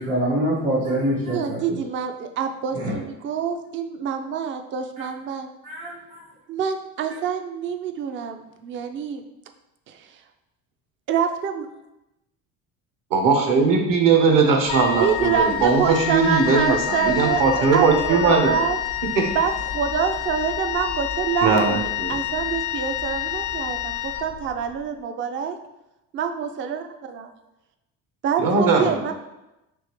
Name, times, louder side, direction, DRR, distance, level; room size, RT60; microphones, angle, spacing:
voice 1, 0.0-1.8 2.7-3.0 5.0-5.1 5.6-6.3 7.1-7.2, right 1 dB, 85° right, -9 dB, 1.4 m, -25 dB
voice 2, 1.3-5.5 6.5-9.2 9.9-10.1 11.1-11.7 15.0-18.8 19.3-25.6 26.1-27.3 28.2-29.1, right 7 dB, 35° right, 7 dB, 0.4 m, -26 dB
voice 3, 13.1-18.6 19.2-19.3 21.4-22.1 28.4-29.1, right 4 dB, 60° right, 2 dB, 0.9 m, -19 dB
Wind instrument woodwind instrument, 14.7-24.8, left 12 dB, 55° left, 0.5 m, -28 dB
3.6 x 2.9 x 3.0 m, 0.94 s
supercardioid pair, 85°, 37 cm